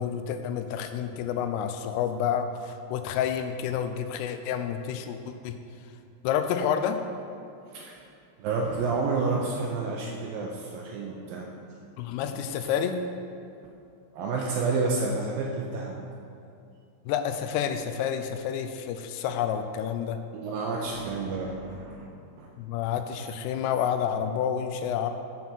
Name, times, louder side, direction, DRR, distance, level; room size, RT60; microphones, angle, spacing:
voice 1, 0.0-5.6 6.2-7.0 12.0-13.0 17.1-20.2 22.6-25.1, left 8 dB, 90° left, 8 dB, 2.6 m, -29 dB
voice 2, 8.4-11.5 14.1-16.0 20.3-22.1 22.4-22.5, right 4 dB, 80° right, -1 dB, 2.1 m, -29 dB
7.3 x 6.0 x 5.6 m, 2.5 s
omnidirectional pair, 4.7 m